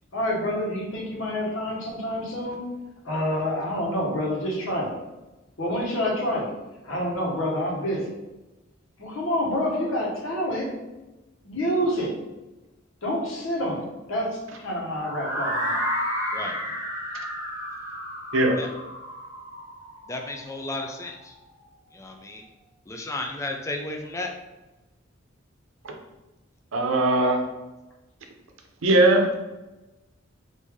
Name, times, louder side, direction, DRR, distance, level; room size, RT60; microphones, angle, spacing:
voice 1, 0.1-2.6 3.0-4.9 5.6-6.5 6.8-8.0 9.0-10.7 11.4-12.1 13.0-15.8, equal, 80° left, -3 dB, 1.1 m, -27 dB
sound 1, 15.0-20.9, equal, 10° right, 0.8 m, -31 dB
voice 2, 20.1-21.1 21.9-22.4 22.9-24.3, left 2 dB, 15° left, 3 dB, 0.3 m, -33 dB
voice 3, 26.7-27.4 28.8-29.3, right 2 dB, 80° right, 2 dB, 0.7 m, -19 dB
3.2 x 2.6 x 3.5 m, 1.0 s
head